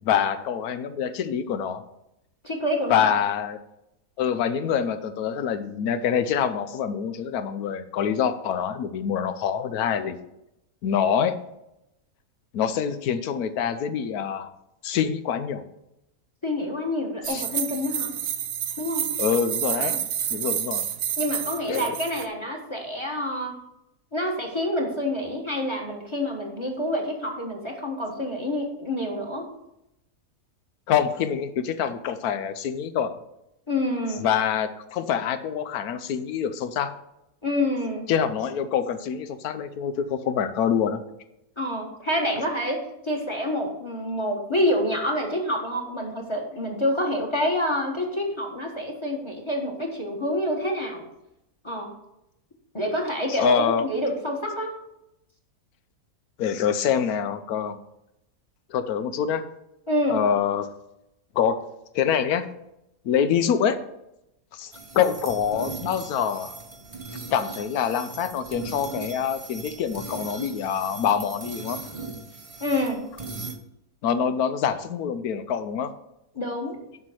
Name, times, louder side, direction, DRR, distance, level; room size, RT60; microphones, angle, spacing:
voice 1, 0.0-1.8 2.9-3.6 4.2-10.2 10.8-11.4 12.5-14.5 14.8-15.6 17.2-17.4 19.2-20.0 20.3-20.9 21.7-21.9 30.9-33.2 34.2-36.9 38.1-41.0 53.3-53.9 56.4-57.8 58.7-59.4 60.1-60.7 61.3-61.6 61.9-62.5 63.0-63.8 64.5-66.5 67.3-71.8 74.0-75.9, left 8 dB, 80° left, 11 dB, 1.2 m, -25 dB
voice 2, 2.4-3.1 16.4-18.1 18.8-19.0 21.2-23.5 24.1-29.5 33.7-34.3 37.4-38.0 41.6-51.0 51.6-51.9 52.7-54.7 59.9-60.2 72.6-73.0 76.3-76.8, left 1 dB, 20° left, 1 dB, 1.3 m, -27 dB
sound 1, 17.2-22.3, right 10 dB, 70° right, 1.0 m, -29 dB
sound 2, 64.7-73.6, right 3 dB, 30° right, 0.7 m, -39 dB
7.4 x 5.7 x 6.3 m, 0.86 s
omnidirectional pair, 1.5 m